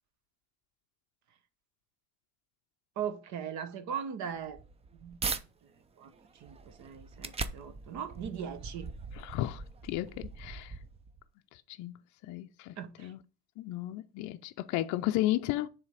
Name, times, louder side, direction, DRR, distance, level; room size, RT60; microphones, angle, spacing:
voice 1, 3.0-4.6 5.0-5.2 6.0-8.9 12.8-13.1, right 8 dB, 50° right, 1.0 m, -39 dB
sound 1, 4.4-5.4 6.0-11.2, right 4 dB, 15° right, 0.4 m, -41 dB
voice 2, 9.1-10.8 11.5-13.2 13.6-15.7, left 15 dB, 55° left, 0.5 m, -34 dB
7.1 x 3.4 x 4.8 m
cardioid pair, 125°, 36 cm